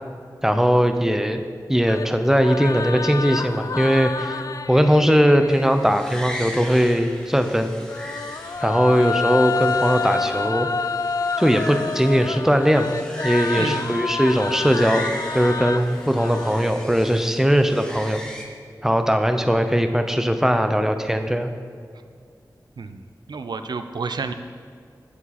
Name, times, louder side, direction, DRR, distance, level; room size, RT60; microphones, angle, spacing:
voice 1, 0.4-1.4 1.7-4.4 4.7-7.7 8.6-10.7 11.4-13.0 13.2-15.1 15.3-18.2 18.8-21.5, equal, 5° right, 7 dB, 0.6 m, -19 dB
sound 1, 1.9-5.9 7.7-17.2, left 4 dB, 50° left, 0.3 m, -29 dB
sound 2, 5.5-18.4, equal, 10° left, 1.2 m, -38 dB
voice 2, 13.6-13.9 22.8-23.0 23.3-24.3, right 4 dB, 75° right, 9 dB, 0.5 m, -30 dB
15.0 x 5.0 x 4.2 m, 2.2 s
wide cardioid pair, 90°, 7 cm